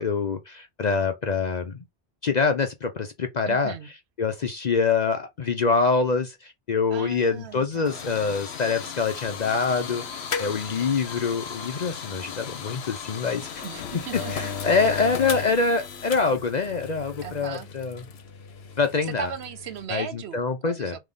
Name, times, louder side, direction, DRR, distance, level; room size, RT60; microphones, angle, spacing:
voice 1, 0.0-1.8 2.2-3.7 4.2-13.6 14.1-18.0 18.8-19.3 19.9-21.0, left 4 dB, 50° left, 0.6 m, -25 dB
voice 2, 3.5-3.9 6.9-7.9 13.6-14.6 14.9-15.0 17.2-17.7 19.1-20.9, right 7 dB, 70° right, 0.9 m, -37 dB
sound 1, 7.1-19.8, left 7 dB, 65° left, 1.0 m, -36 dB
3.5 x 3.2 x 3.7 m
omnidirectional pair, 1.2 m